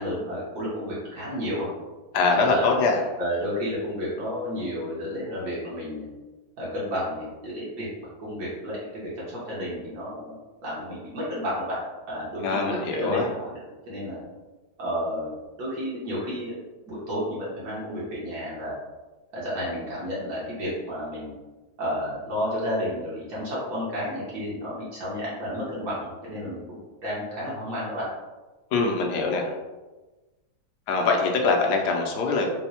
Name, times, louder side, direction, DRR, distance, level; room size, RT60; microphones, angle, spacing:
voice 1, 0.0-1.7 2.3-2.7 3.2-6.1 6.6-7.9 8.2-10.4 10.6-11.8 12.1-13.6 13.9-14.2 14.8-16.6 16.9-18.7 19.3-21.3 21.8-26.6 27.0-28.0, equal, 75° right, -8 dB, 1.6 m, -31 dB
voice 2, 2.1-3.0 12.4-13.3 28.7-29.5 30.9-32.5, left 3 dB, 85° left, 1 dB, 1.2 m, -23 dB
4.2 x 2.0 x 2.8 m, 1.2 s
omnidirectional pair, 1.7 m